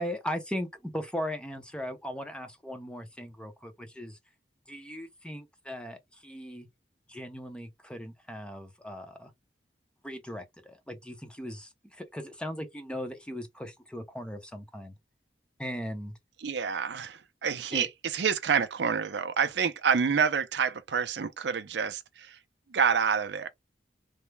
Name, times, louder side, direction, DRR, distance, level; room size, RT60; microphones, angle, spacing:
voice 1, 0.0-4.2 4.7-6.7 7.1-9.3 10.0-14.9 15.6-16.1 17.7-17.9, equal, 5° left, 0.6 m, -38 dB
voice 2, 16.4-22.4 22.7-23.5, right 6 dB, 75° right, 0.5 m, -28 dB
3.3 x 2.1 x 3.2 m
head